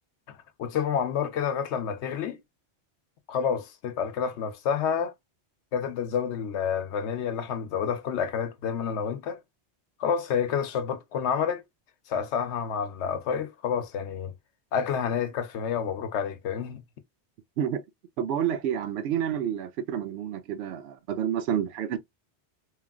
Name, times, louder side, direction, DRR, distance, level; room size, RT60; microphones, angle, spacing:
voice 1, 0.3-2.4 3.3-5.1 5.7-9.4 10.0-11.6 12.1-14.3 14.7-16.8, left 7 dB, 90° left, 0.9 m, -29 dB
voice 2, 18.2-22.0, right 9 dB, 70° right, 0.8 m, -29 dB
3.1 x 2.4 x 2.4 m
omnidirectional pair, 1.1 m